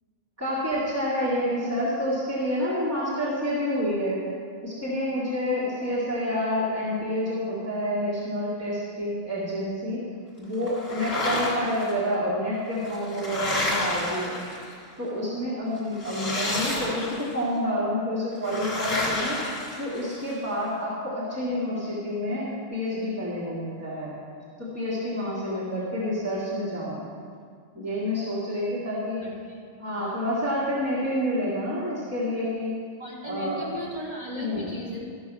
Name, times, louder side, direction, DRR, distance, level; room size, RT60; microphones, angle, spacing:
voice 1, 0.4-4.2 4.6-10.0 10.4-14.4 15.0-19.4 19.8-24.1 24.6-27.0 27.7-29.2 29.8-32.7 33.2-33.6 34.4-34.7, equal, 10° right, -9 dB, 2.1 m, -28 dB
sound 1, 10.7-11.9 12.7-14.9 16.0-17.4 18.4-20.3, left 2 dB, 45° left, 2.4 m, -30 dB
voice 2, 29.2-29.6 33.0-35.0, left 1 dB, 25° right, -7 dB, 2.7 m, -36 dB
13.5 x 6.3 x 6.2 m, 2.1 s
omnidirectional pair, 1.4 m